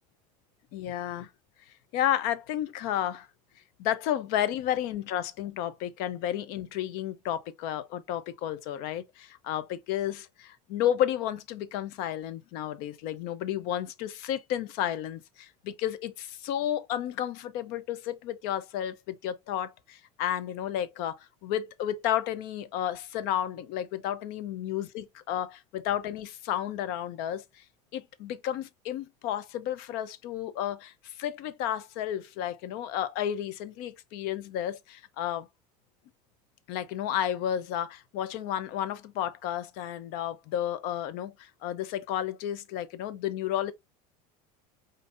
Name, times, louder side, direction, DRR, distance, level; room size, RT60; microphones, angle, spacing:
voice 1, 0.7-1.3 1.9-3.3 3.8-27.6 27.9-35.5 36.7-43.7, left 11 dB, 70° left, 0.6 m, -32 dB
5.2 x 2.7 x 2.5 m
supercardioid pair, 110°, 17 cm